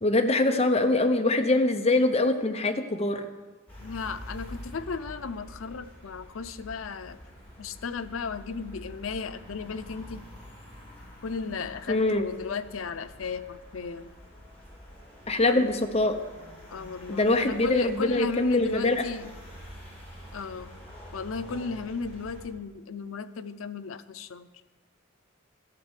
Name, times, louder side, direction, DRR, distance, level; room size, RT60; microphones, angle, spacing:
voice 1, 0.0-3.2 11.9-12.3 15.3-16.2 17.1-19.1, left 2 dB, 30° left, 5 dB, 0.9 m, -23 dB
sound 1, 3.7-22.5, equal, 10° left, 4.3 m, -47 dB
voice 2, 3.8-7.2 7.6-10.3 11.2-14.1 15.5-15.7 16.7-19.4 20.3-20.8 21.1-24.5, left 5 dB, 90° left, 11 dB, 0.6 m, -35 dB
12.5 x 6.6 x 8.1 m, 1.3 s
head